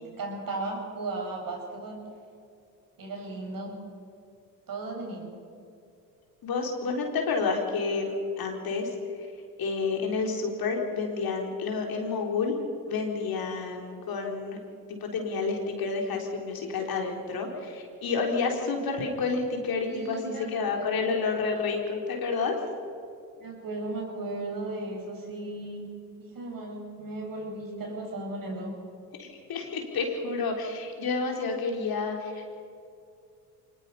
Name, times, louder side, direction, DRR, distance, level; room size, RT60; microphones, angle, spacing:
voice 1, 0.2-2.0 3.0-3.8 4.7-5.3 19.8-20.5 20.7-21.2 23.4-25.9 26.2-28.7, right 2 dB, 50° right, 0 dB, 7.4 m, -36 dB
voice 2, 6.4-8.9 9.2-9.3 9.6-12.5 12.9-14.6 14.9-22.6 29.2-32.5, left 4 dB, 55° left, 2 dB, 4.0 m, -30 dB
24.0 x 20.5 x 5.6 m, 2.5 s
hypercardioid pair, 60°, 43 cm